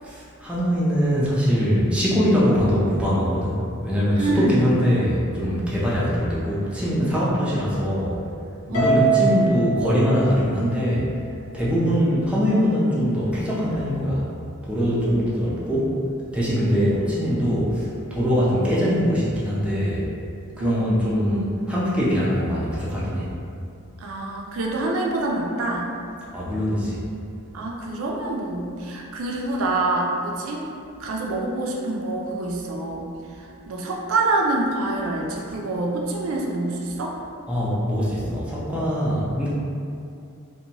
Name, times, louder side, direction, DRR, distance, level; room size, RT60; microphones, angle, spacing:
voice 1, 0.0-8.2 8.7-11.1 11.5-14.2 14.6-16.0 16.3-20.1 20.6-23.3 26.3-27.0 37.5-39.5, equal, 5° right, -8 dB, 0.4 m, -22 dB
voice 2, 4.2-4.7 8.7-8.9 15.0-15.3 20.6-20.9 24.0-25.9 27.5-30.7 31.0-33.1 33.4-37.2, right 2 dB, 65° right, -1 dB, 0.4 m, -26 dB
Harp, 8.7-11.2, right 4 dB, 80° left, 0.8 m, -23 dB
2.6 x 2.1 x 2.8 m, 2.5 s
head